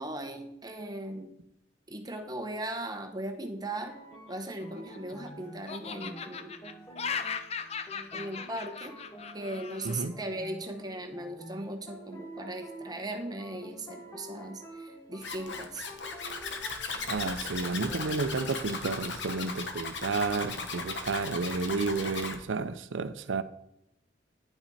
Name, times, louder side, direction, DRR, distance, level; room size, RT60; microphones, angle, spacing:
voice 1, 0.0-1.3 1.9-4.0 4.3-6.6 8.1-9.0 9.3-15.9, right 1 dB, 20° right, 0.9 m, -38 dB
sound 1, 3.6-19.0, right 1 dB, 20° left, 1.1 m, -48 dB
Laughter, 4.5-5.3 5.7-10.0, left 6 dB, 35° left, 0.5 m, -38 dB
Zipper (clothing), 15.2-22.4, left 4 dB, 70° left, 1.1 m, -37 dB
voice 2, 17.1-23.4, right 4 dB, 90° right, 0.6 m, -31 dB
10.0 x 5.8 x 4.2 m
head